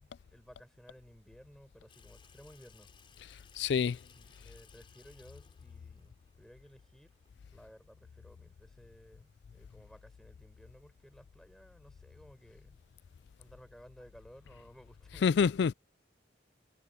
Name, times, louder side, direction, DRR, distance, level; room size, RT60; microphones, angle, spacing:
voice 1, 0.0-2.9 3.8-7.1 7.5-12.8 13.4-15.5, equal, ahead, 7.2 m, -57 dB
Water tap faucet / Sink (filling or washing), 1.9-7.3, left 6 dB, 25° left, 4.9 m, -63 dB
voice 2, 3.6-4.0 15.2-15.7, left 6 dB, 65° left, 0.3 m, -26 dB
head